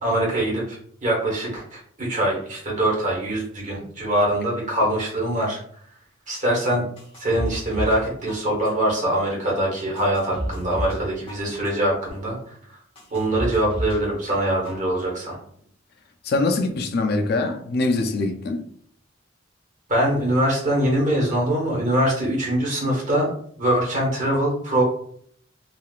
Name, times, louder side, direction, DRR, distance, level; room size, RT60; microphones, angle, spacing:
voice 1, 0.0-5.6 6.3-6.8 7.2-12.4 13.1-15.4 19.9-23.3 23.6-24.8, right 1 dB, 40° right, 1.2 m, -23 dB
sound 1, 7.0-8.0 8.3-8.9 9.4-9.5 10.0-11.0 11.3-11.9 12.4-12.5 13.0-14.0 14.3-14.9 15.2-15.3, equal, 30° left, 1.0 m, -31 dB
voice 2, 16.2-18.6, left 2 dB, 55° left, 0.4 m, -23 dB
3.6 x 2.3 x 2.4 m
head